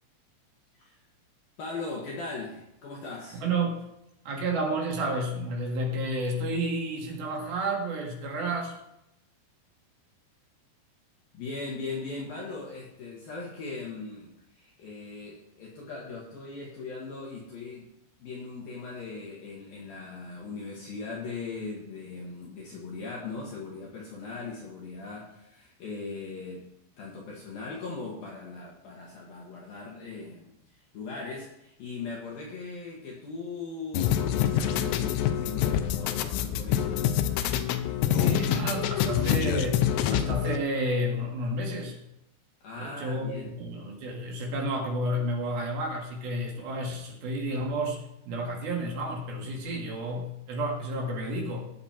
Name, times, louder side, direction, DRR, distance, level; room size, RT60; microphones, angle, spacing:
voice 1, 1.6-3.4 11.3-17.9 18.2-26.6 27.0-37.0 42.6-43.6, left 3 dB, 60° left, -3 dB, 3.0 m, -39 dB
voice 2, 3.4-3.8 4.3-8.7 38.1-42.0 42.8-48.0 48.3-51.7, right 1 dB, 60° right, 0 dB, 3.5 m, -31 dB
sound 1, 33.9-40.6, left 10 dB, 80° left, 2.6 m, -26 dB
18.0 x 7.5 x 4.4 m, 0.82 s
omnidirectional pair, 5.5 m